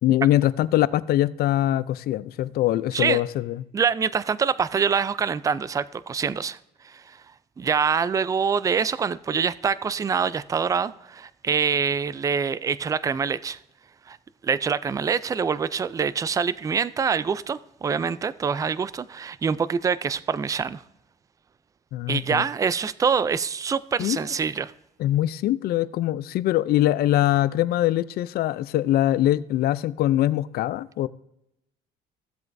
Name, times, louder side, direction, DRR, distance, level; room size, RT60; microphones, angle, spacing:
voice 1, 0.0-3.6 21.9-22.4 24.0-24.2 25.0-31.1, left 13 dB, 65° left, 0.5 m, -23 dB
voice 2, 3.7-6.6 6.8-7.2 7.6-13.6 14.1-14.2 14.4-20.8 22.1-24.7, right 6 dB, 20° right, 0.3 m, -25 dB
15.0 x 7.7 x 2.6 m
cardioid pair, 110°, 17 cm